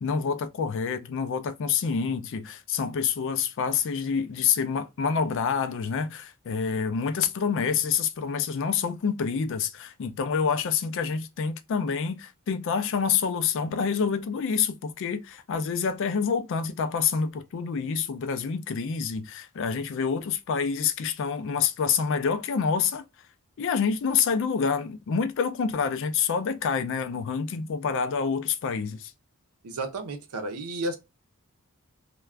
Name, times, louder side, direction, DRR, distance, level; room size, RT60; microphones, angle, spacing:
voice 1, 0.0-23.0 23.6-29.1, left 6 dB, 60° left, 0.4 m, -27 dB
voice 2, 29.6-31.0, right 2 dB, 90° right, 0.6 m, -32 dB
2.4 x 2.2 x 3.1 m
head